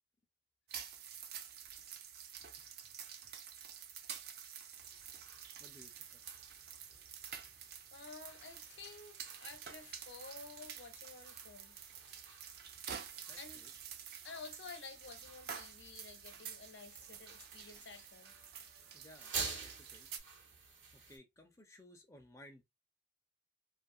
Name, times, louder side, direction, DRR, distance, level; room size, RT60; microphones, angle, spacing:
sound 1, 0.7-20.2, right 8 dB, 55° right, 0.4 m, -50 dB
voice 1, 2.6-2.9 5.6-6.2 13.3-13.7 18.9-20.1 20.9-22.6, left 1 dB, 15° left, 0.5 m, -60 dB
sound 2, 4.8-21.2, right 5 dB, 80° right, 1.0 m, -51 dB
voice 2, 7.9-11.8 13.4-13.6 14.2-18.3, left 4 dB, 70° left, 0.7 m, -52 dB
2.7 x 2.4 x 2.6 m
head